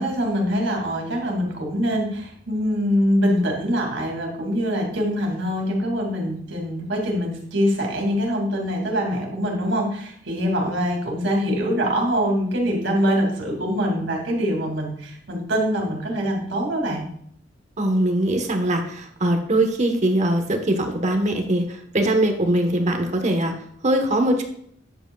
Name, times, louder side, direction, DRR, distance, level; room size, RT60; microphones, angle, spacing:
voice 1, 0.0-17.1, equal, 85° right, 0 dB, 2.4 m, -24 dB
voice 2, 17.8-23.5 23.8-24.4, right 1 dB, 40° right, 4 dB, 1.2 m, -21 dB
9.8 x 7.9 x 2.3 m, 0.66 s
head